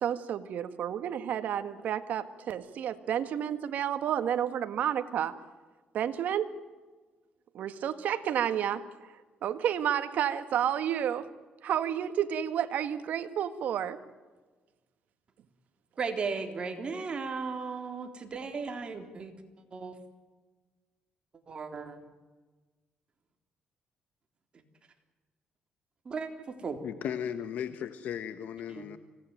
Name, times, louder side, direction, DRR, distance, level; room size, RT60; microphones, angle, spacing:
voice 1, 0.0-5.4 5.9-6.5 7.5-8.9 9.4-11.3 11.6-14.0, right 9 dB, 70° right, 1.7 m, -30 dB
voice 2, 16.0-19.3 19.7-20.0 21.5-22.1 26.1-26.8 28.7-28.9, right 5 dB, 40° right, 3.6 m, -36 dB
voice 3, 26.8-29.0, left 9 dB, 70° left, 1.3 m, -36 dB
26.0 x 18.0 x 9.2 m
cardioid pair, 105°, 3 cm